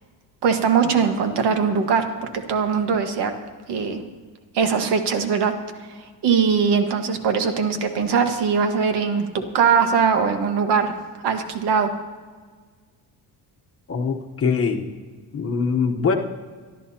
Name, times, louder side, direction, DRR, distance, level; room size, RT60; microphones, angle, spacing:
voice 1, 0.4-3.3 3.7-4.0 4.5-5.5 6.2-10.9 11.2-11.9, right 6 dB, 75° right, 6 dB, 1.6 m, -21 dB
voice 2, 13.9-14.8 15.3-16.2, left 5 dB, 35° left, 3 dB, 1.1 m, -22 dB
25.5 x 12.0 x 2.8 m, 1.5 s
cardioid pair, 170°, 42 cm